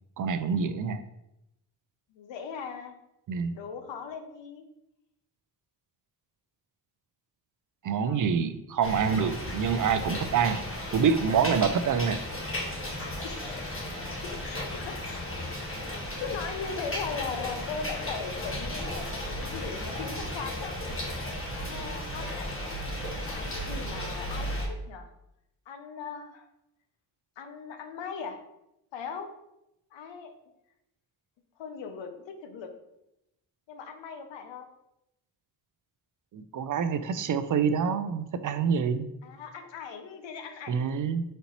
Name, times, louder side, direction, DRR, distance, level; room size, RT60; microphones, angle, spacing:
voice 1, 0.2-1.0 3.3-3.6 7.8-10.6 10.9-12.2 36.3-39.1 40.7-41.2, right 6 dB, 50° right, 11 dB, 0.4 m, -26 dB
voice 2, 2.1-2.9 3.5-4.6 7.8-8.3 13.2-13.8 14.2-15.5 15.8-20.7 21.6-22.5 22.8-25.1 25.7-26.5 27.4-28.4 28.9-29.3 29.9-30.3 31.6-32.7 33.7-34.7 39.2-40.8, left 5 dB, 85° left, 7 dB, 0.7 m, -39 dB
sound 1, 8.8-24.7, left 1 dB, 30° left, 1.4 m, -35 dB
4.2 x 4.0 x 3.0 m, 0.85 s
cardioid pair, 75°, 43 cm